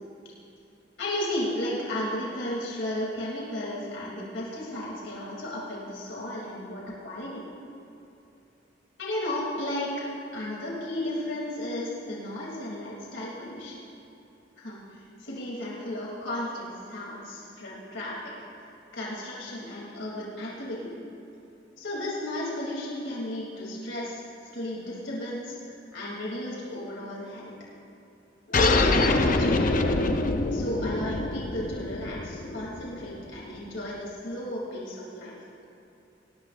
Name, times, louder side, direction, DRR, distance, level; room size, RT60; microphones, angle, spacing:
voice 1, 1.0-7.4 9.0-10.1 10.3-13.8 14.6-18.3 18.9-20.9 21.8-27.6 28.5-30.0 30.5-35.4, left 1 dB, 85° left, -5 dB, 3.0 m, -34 dB
sound 1, 28.5-33.6, left 2 dB, 45° left, 0.8 m, -25 dB
21.0 x 18.5 x 2.6 m, 2.9 s
head